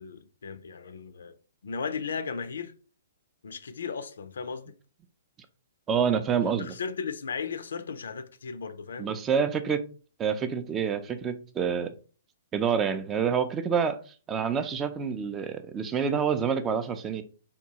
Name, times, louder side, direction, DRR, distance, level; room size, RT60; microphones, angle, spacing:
voice 1, 0.0-1.3 1.6-2.7 3.4-4.7 6.4-9.1, left 5 dB, 70° left, 0.4 m, -36 dB
voice 2, 5.9-6.7 9.0-9.8 10.2-11.9 12.5-14.0 14.3-17.2, right 7 dB, 20° right, 0.4 m, -27 dB
3.5 x 2.3 x 2.8 m
figure-of-eight pair, 120°, 0 cm